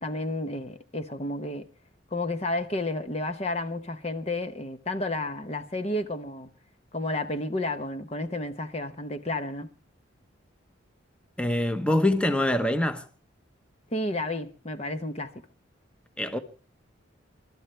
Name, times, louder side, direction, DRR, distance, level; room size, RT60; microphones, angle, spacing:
voice 1, 0.0-1.7 2.1-6.5 6.9-9.7 13.9-15.4, left 2 dB, 30° left, 1.0 m, -31 dB
voice 2, 11.4-13.1 16.2-16.4, left 1 dB, 5° left, 1.0 m, -24 dB
28.5 x 12.5 x 3.3 m
head